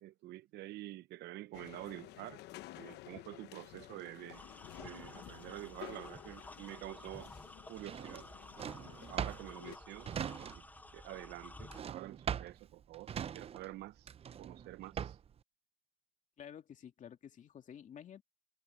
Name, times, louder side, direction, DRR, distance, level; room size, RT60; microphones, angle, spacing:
voice 1, 0.0-2.4 2.7-4.4 4.8-7.3 7.7-8.3 9.1-10.2 10.6-10.7 10.9-14.1 14.4-15.2, right 16 dB, 80° right, 0.9 m, -48 dB
sound 1, 1.5-9.8, left 16 dB, 85° left, 1.0 m, -53 dB
sound 2, 4.3-11.8, left 2 dB, 10° left, 0.8 m, -53 dB
Drawer open or close, 7.8-10.9 11.1-15.4, right 8 dB, 35° right, 0.5 m, -41 dB
voice 2, 16.4-18.2, left 8 dB, 50° left, 2.4 m, -51 dB
cardioid pair, 110°, 17 cm